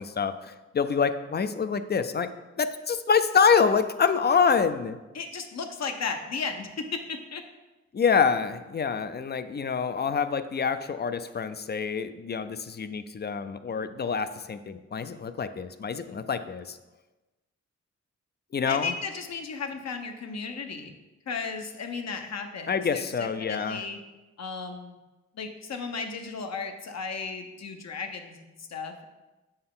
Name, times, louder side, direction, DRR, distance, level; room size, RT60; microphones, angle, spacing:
voice 1, 0.0-2.3 2.6-5.0 7.9-16.8 18.5-18.9 22.7-23.8, left 6 dB, 35° left, 11 dB, 0.4 m, -26 dB
voice 2, 5.1-7.4 18.7-20.9 21.3-24.0 24.4-25.0 25.3-29.0, left 5 dB, 60° left, 5 dB, 0.8 m, -35 dB
6.7 x 4.4 x 3.7 m, 1.1 s
cardioid pair, 60°, 29 cm